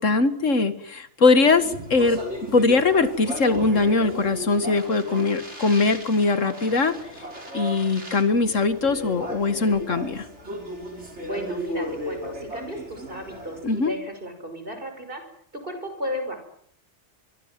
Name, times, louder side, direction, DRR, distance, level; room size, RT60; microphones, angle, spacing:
voice 1, 0.0-2.2 2.5-7.0 7.5-10.3 13.6-13.9, left 3 dB, 90° left, 11 dB, 2.2 m, -21 dB
voice 2, 1.4-1.7 11.2-15.2 15.5-16.4, equal, 45° right, 6 dB, 6.2 m, -34 dB
Speech, 1.4-13.8, equal, 65° right, 6.3 m, -35 dB
24.5 x 23.0 x 7.6 m, 0.66 s
omnidirectional pair, 1.3 m